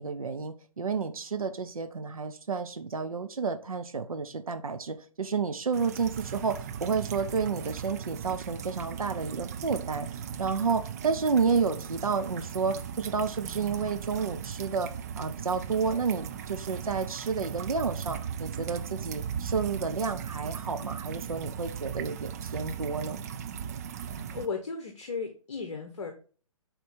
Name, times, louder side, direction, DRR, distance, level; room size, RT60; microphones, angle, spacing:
voice 1, 0.0-23.2, right 5 dB, 70° right, 8 dB, 0.8 m, -31 dB
sound 1, 5.7-24.5, right 8 dB, 25° right, 0.5 m, -38 dB
voice 2, 24.0-26.1, left 5 dB, 55° left, 5 dB, 1.0 m, -36 dB
6.3 x 4.4 x 5.0 m, 0.40 s
figure-of-eight pair, 130°, 18 cm